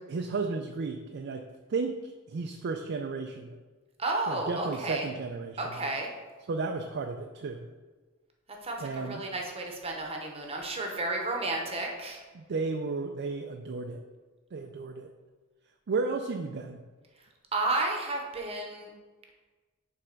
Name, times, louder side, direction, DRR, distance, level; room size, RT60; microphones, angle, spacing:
voice 1, 0.1-1.4 1.7-3.6 4.3-5.8 6.5-7.7 8.8-9.3 12.3-14.0 14.5-15.1 15.9-16.8, right 4 dB, 50° right, 5 dB, 0.4 m, -33 dB
voice 2, 4.0-5.1 5.6-6.1 8.6-12.2 17.5-18.9, right 2 dB, 30° right, 1 dB, 0.9 m, -32 dB
7.4 x 3.4 x 5.1 m, 1.3 s
head